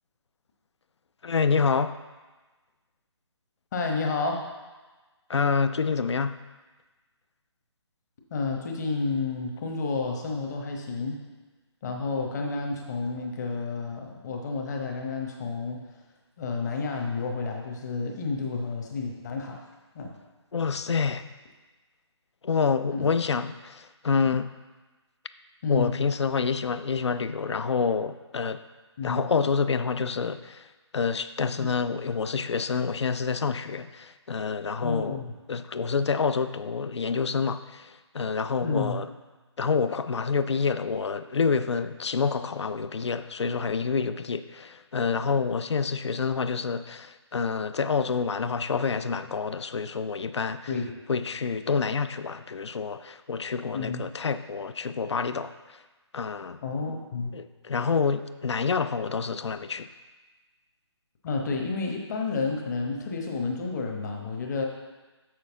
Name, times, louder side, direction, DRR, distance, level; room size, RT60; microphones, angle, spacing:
voice 1, 1.2-2.0 5.3-6.4 20.5-21.3 22.4-24.5 25.7-28.6 29.0-35.2 35.5-39.1 39.6-50.7 51.1-55.8 56.1-56.6 57.3-59.9, left 5 dB, 70° left, 12 dB, 0.4 m, -27 dB
voice 2, 3.7-4.5 8.3-11.2 11.8-15.8 16.4-19.6 19.9-20.1 22.9-23.1 25.6-25.9 29.0-29.2 31.6-31.7 34.8-35.3 38.6-39.0 50.7-50.9 53.7-54.1 56.6-57.3 61.2-64.6, left 4 dB, 35° left, 1 dB, 1.1 m, -30 dB
6.9 x 6.5 x 3.6 m, 1.2 s
figure-of-eight pair, 145°, 15 cm